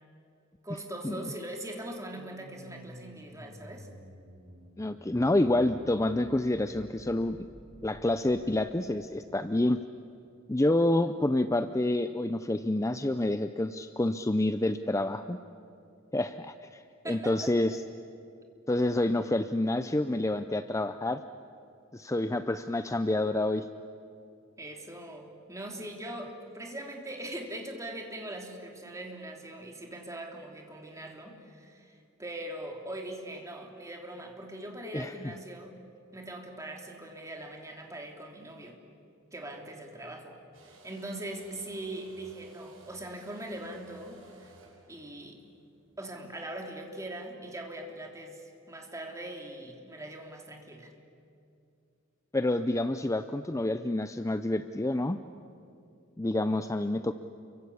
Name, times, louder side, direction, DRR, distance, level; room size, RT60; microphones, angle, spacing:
voice 1, 0.6-3.9 17.0-17.5 24.6-35.8 36.1-38.8 39.3-44.6 44.9-45.4 46.0-50.9, right 1 dB, 15° right, 2 dB, 3.2 m, -41 dB
sound 1, 2.1-8.8, equal, 55° right, 3.4 m, -52 dB
voice 2, 4.8-7.4 7.8-9.8 10.5-15.4 16.1-17.8 18.7-21.2 21.9-23.7 34.9-35.3 52.3-55.2 56.2-57.1, left 1 dB, 15° left, 10 dB, 0.6 m, -28 dB
sound 2, 40.5-46.0, right 2 dB, 90° right, 6.3 m, -56 dB
29.5 x 23.5 x 8.6 m, 2.6 s
head